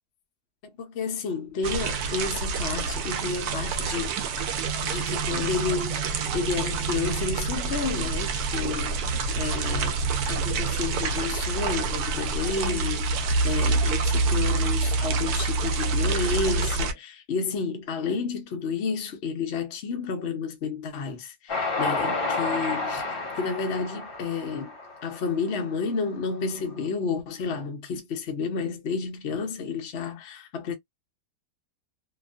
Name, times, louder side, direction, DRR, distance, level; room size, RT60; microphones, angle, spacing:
voice 1, 0.6-4.2 4.8-9.1 9.3-24.7 25.0-30.7, left 5 dB, 60° left, 0.6 m, -31 dB
sound 1, 1.6-16.9, right 4 dB, 70° right, 1.0 m, -27 dB
Train, 21.5-25.9, left 3 dB, 35° left, 1.2 m, -30 dB
2.9 x 2.5 x 2.3 m
omnidirectional pair, 1.8 m